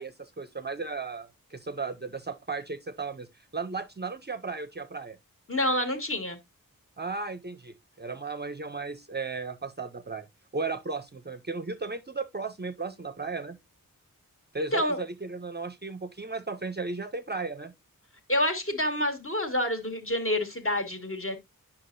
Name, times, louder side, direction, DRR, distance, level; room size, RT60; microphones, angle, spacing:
voice 1, 0.0-3.3 3.5-5.2 7.0-10.3 10.5-13.6 14.5-17.7, right 4 dB, 30° right, 0.5 m, -35 dB
voice 2, 5.5-6.4 14.7-15.0 18.3-21.4, left 1 dB, 35° left, 1.8 m, -28 dB
9.5 x 5.8 x 2.5 m
wide cardioid pair, 80°, 35 cm